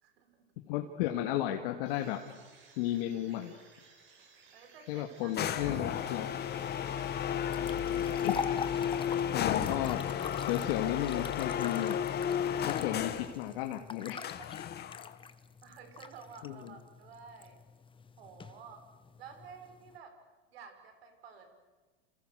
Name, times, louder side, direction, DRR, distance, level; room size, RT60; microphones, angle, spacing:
voice 1, 0.0-0.7 4.5-7.5 15.6-17.6 18.2-18.8 19.2-20.2 20.5-21.6, right 6 dB, 85° right, 7 dB, 5.4 m, -53 dB
voice 2, 0.7-2.2 2.8-3.6 4.9-6.3 8.2-8.4 9.3-10.1 10.4-12.0 12.7-14.2 16.4-16.7, left 12 dB, 70° left, 4 dB, 2.4 m, -33 dB
sound 1, 1.9-9.4, right 4 dB, 40° right, 6.9 m, -60 dB
sound 2, 5.3-13.4 14.2-15.1, left 9 dB, 35° left, 1.9 m, -33 dB
sound 3, 6.6-20.0, left 6 dB, 15° left, 1.3 m, -45 dB
28.5 x 28.0 x 6.6 m, 1.3 s
supercardioid pair, 120°, 30 cm